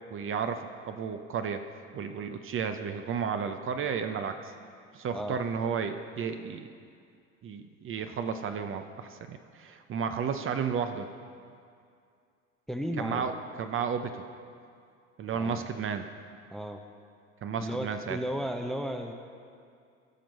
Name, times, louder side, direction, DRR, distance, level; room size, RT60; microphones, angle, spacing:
voice 1, 0.1-1.6 1.9-4.4 4.9-6.7 7.4-11.1 13.0-13.3 13.6-14.2 15.2-16.1 17.4-18.2, right 6 dB, 35° right, 7 dB, 0.7 m, -32 dB
voice 2, 5.1-5.4 12.7-13.3 15.3-15.7 16.5-16.8 17.6-19.1, equal, ahead, 5 dB, 0.7 m, -34 dB
15.0 x 6.1 x 5.3 m, 2.3 s
hypercardioid pair, 80°, 38 cm